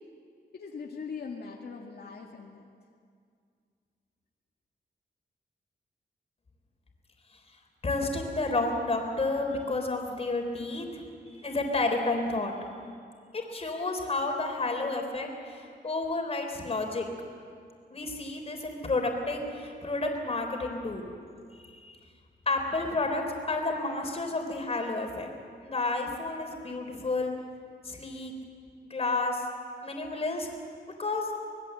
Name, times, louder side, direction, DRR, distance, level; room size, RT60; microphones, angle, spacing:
voice 1, 0.5-2.7, left 5 dB, 70° left, -1 dB, 1.9 m, -41 dB
voice 2, 7.8-12.5 13.3-17.1 17.9-21.0 21.7-22.0 22.5-25.3 25.6-27.3 27.8-28.3 28.9-29.4 29.8-30.5 31.0-31.3, left 2 dB, 35° left, 3 dB, 3.8 m, -31 dB
25.0 x 20.5 x 7.8 m, 2.2 s
wide cardioid pair, 145°, 18 cm